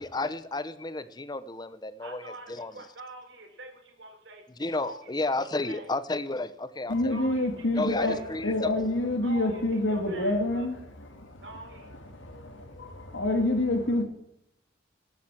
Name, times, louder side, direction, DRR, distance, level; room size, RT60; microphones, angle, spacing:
voice 1, 0.0-2.7 4.6-7.2 7.8-8.7, left 2 dB, 20° left, 0.8 m, -32 dB
voice 2, 2.0-4.4 4.7-5.1 5.4-5.9 7.1-7.5 7.8-8.3 9.2-9.6 9.9-10.7 11.4-11.9, right 2 dB, 70° right, 3.7 m, -45 dB
voice 3, 6.9-14.0, left 1 dB, 85° left, 2.0 m, -28 dB
12.5 x 12.0 x 6.1 m
head